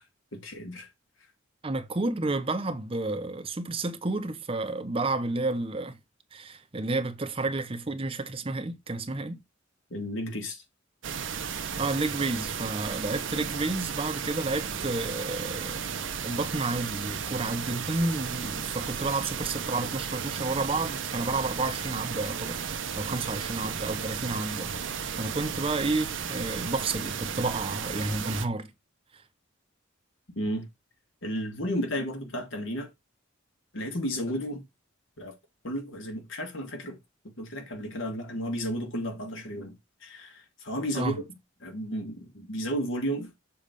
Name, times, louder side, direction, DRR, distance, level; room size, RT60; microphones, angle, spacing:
voice 1, 0.3-0.9 9.9-10.6 30.4-30.7 31.2-32.9 33.7-34.6 35.2-35.3 35.6-37.0 37.4-39.8 40.0-41.2 41.6-43.3, equal, 70° left, 2.0 m, -33 dB
voice 2, 1.6-6.0 6.3-9.4 11.8-24.9 25.2-28.7 40.9-41.2, right 2 dB, 25° right, 0.7 m, -31 dB
sound 1, 11.0-28.5, right 7 dB, 65° right, 0.8 m, -34 dB
7.0 x 3.3 x 5.2 m
head